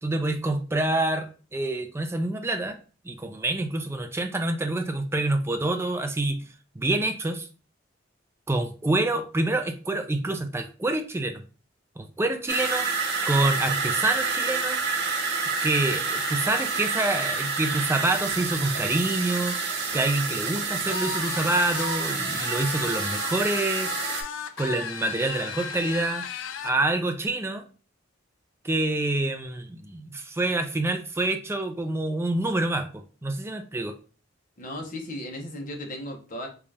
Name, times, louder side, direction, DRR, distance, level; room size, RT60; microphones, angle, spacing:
voice 1, 0.0-2.8 3.0-6.4 6.8-7.5 8.5-11.4 12.0-12.9 13.3-14.8 15.6-19.6 19.9-24.1 24.6-26.3 26.6-27.6 28.6-32.9 33.2-34.0, right 2 dB, 15° right, 6 dB, 0.4 m, -27 dB
sound 1, 12.5-24.2, right 4 dB, 60° right, 0.8 m, -28 dB
sound 2, 20.9-26.8, left 7 dB, 80° left, 0.4 m, -35 dB
voice 2, 34.6-36.5, left 1 dB, 45° left, 1 dB, 0.8 m, -36 dB
3.9 x 2.4 x 3.2 m, 0.36 s
head